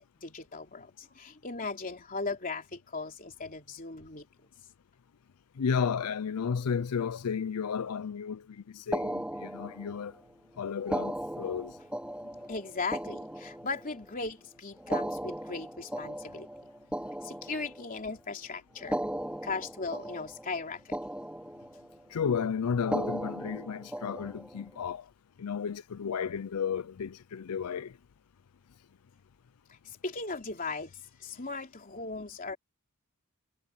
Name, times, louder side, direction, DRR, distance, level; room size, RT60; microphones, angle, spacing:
voice 1, 0.0-4.3 12.2-16.5 17.2-19.0 19.4-21.0 30.0-32.6, left 3 dB, 40° left, 3.4 m, -38 dB
voice 2, 5.6-8.4 8.7-10.1 10.6-11.7 22.1-25.0 25.4-27.9, left 6 dB, 90° left, 0.5 m, -33 dB
sound 1, 8.9-10.2 10.8-14.1 14.8-18.1 18.8-20.6 20.9-22.0 22.8-24.6, right 1 dB, 5° right, 2.4 m, -37 dB
head